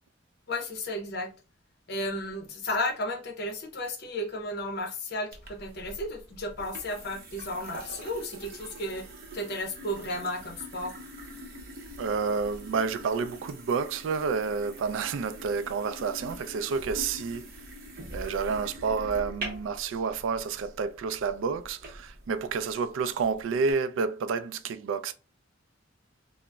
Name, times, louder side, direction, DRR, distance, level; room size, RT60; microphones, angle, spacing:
voice 1, 0.5-1.3 1.9-9.0 9.3-10.9, left 1 dB, 55° left, 0.7 m, -33 dB
sound 1, 5.3-23.7, right 1 dB, 50° right, 0.6 m, -44 dB
voice 2, 12.0-17.4 18.1-25.1, right 5 dB, 80° right, 0.3 m, -29 dB
3.7 x 2.0 x 2.2 m
head